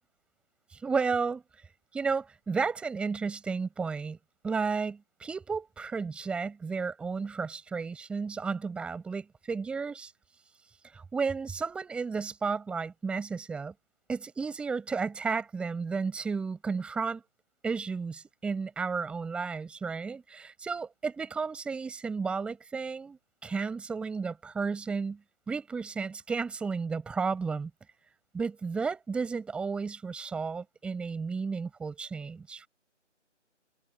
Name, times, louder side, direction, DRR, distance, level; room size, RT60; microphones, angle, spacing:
voice 1, 0.7-1.4 1.9-4.2 4.4-10.1 10.9-13.7 14.1-17.2 17.6-25.2 25.5-27.7 28.3-32.7, right 5 dB, 5° right, 7.0 m, -33 dB
figure-of-eight pair, 165°, 37 cm